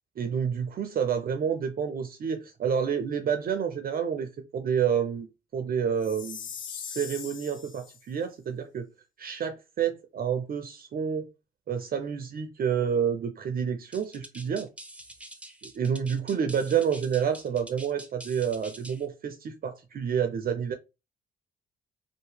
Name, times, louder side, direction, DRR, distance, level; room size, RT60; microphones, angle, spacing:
voice 1, 0.2-5.3 5.5-6.4 6.7-8.9 9.2-11.3 11.7-14.7 15.6-20.7, right 7 dB, 50° right, 0.5 m, -29 dB
Chime, 6.0-8.0, left 7 dB, 75° left, 0.5 m, -40 dB
sound 1, 13.9-19.1, right 1 dB, 5° right, 0.6 m, -46 dB
2.7 x 2.1 x 3.3 m
supercardioid pair, 50°, 19 cm